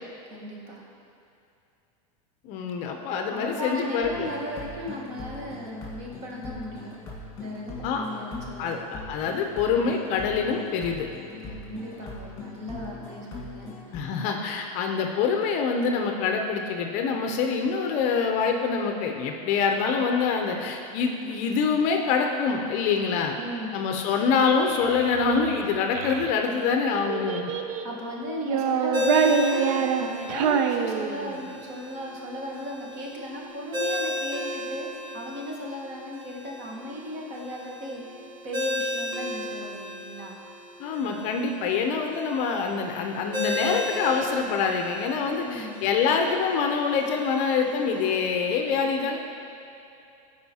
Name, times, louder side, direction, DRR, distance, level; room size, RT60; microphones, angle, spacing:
voice 1, 0.3-0.8 3.2-6.9 7.4-9.0 11.4-13.7 23.4-23.8 27.8-40.4 45.3-45.8, equal, 40° right, -2 dB, 1.3 m, -36 dB
voice 2, 2.4-4.3 7.8-8.1 8.6-11.1 13.9-23.4 23.7-27.5 40.8-49.2, left 5 dB, 40° left, 3 dB, 0.5 m, -25 dB
sound 1, 4.0-14.0, left 3 dB, 20° left, 1.6 m, -41 dB
Child speech kid speaking, 24.6-26.3 27.1-27.9 28.4-31.5, right 6 dB, 75° right, 0.5 m, -26 dB
Ringtone, 28.9-48.1, left 1 dB, 25° right, 0.8 m, -35 dB
12.5 x 4.8 x 2.8 m, 2.7 s
supercardioid pair, 155°, 19 cm